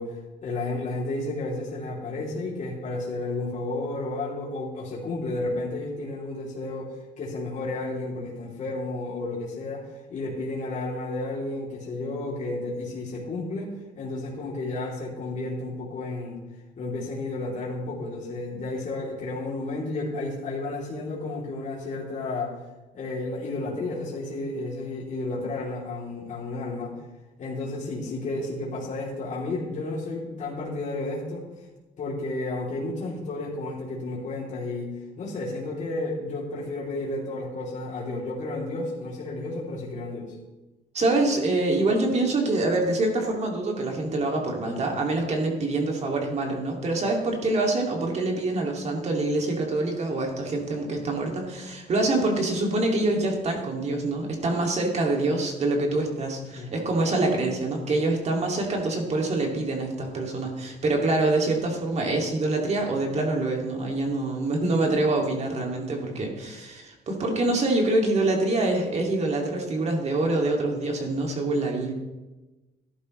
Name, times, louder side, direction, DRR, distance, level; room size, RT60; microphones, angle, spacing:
voice 1, 0.0-16.4 16.8-22.5 22.9-26.9 27.4-31.4 32.0-40.3 56.6-56.9, left 2 dB, 45° left, -5 dB, 3.1 m, -32 dB
voice 2, 40.9-71.9, right 2 dB, 40° right, 1 dB, 2.4 m, -25 dB
13.5 x 11.0 x 3.2 m, 1.1 s
cardioid pair, 110°, 17 cm